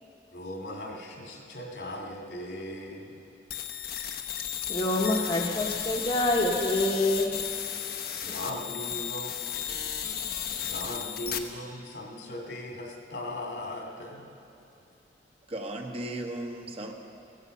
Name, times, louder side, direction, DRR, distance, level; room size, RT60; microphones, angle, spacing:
voice 1, 0.3-3.2 8.2-9.9 10.6-14.3, left 1 dB, 75° left, 0 dB, 2.6 m, -38 dB
sound 1, 3.5-11.4, left 9 dB, 55° left, 1.0 m, -34 dB
voice 2, 4.7-7.3, left 1 dB, 30° left, -1 dB, 1.1 m, -26 dB
voice 3, 15.5-16.9, right 1 dB, 35° right, 3 dB, 1.1 m, -36 dB
15.0 x 15.0 x 5.5 m, 2.8 s
head